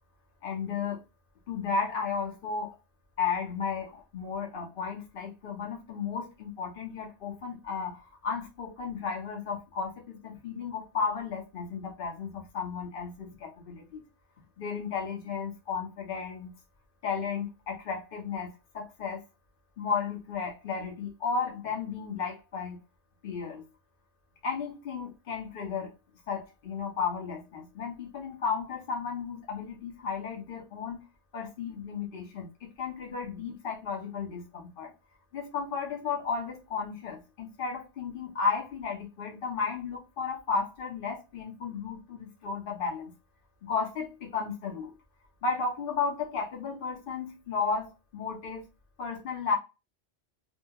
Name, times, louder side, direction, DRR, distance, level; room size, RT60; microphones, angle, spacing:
voice 1, 0.4-1.0 1.5-2.7 3.2-14.0 14.6-16.5 17.0-19.2 19.8-22.8 23.2-23.6 24.4-25.9 26.3-31.0 31.3-34.9 35.3-43.1 43.6-44.9 45.4-48.7 49.0-49.6, left 5 dB, 55° left, 0.9 m, -34 dB
2.8 x 2.3 x 2.2 m
omnidirectional pair, 1.2 m